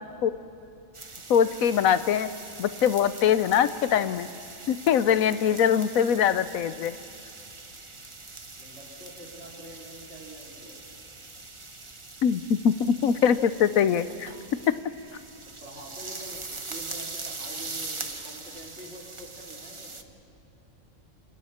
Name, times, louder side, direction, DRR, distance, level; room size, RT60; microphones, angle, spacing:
sound 1, 0.9-20.0, right 3 dB, 25° right, 0.9 m, -42 dB
voice 1, 1.3-2.3 2.6-4.3 4.7-6.9 12.2-14.3, left 8 dB, 80° left, 13 dB, 1.2 m, -23 dB
voice 2, 8.6-10.8 15.6-20.0, right 1 dB, 55° right, -4 dB, 4.5 m, -46 dB
28.5 x 27.0 x 4.4 m, 2.6 s
omnidirectional pair, 1.4 m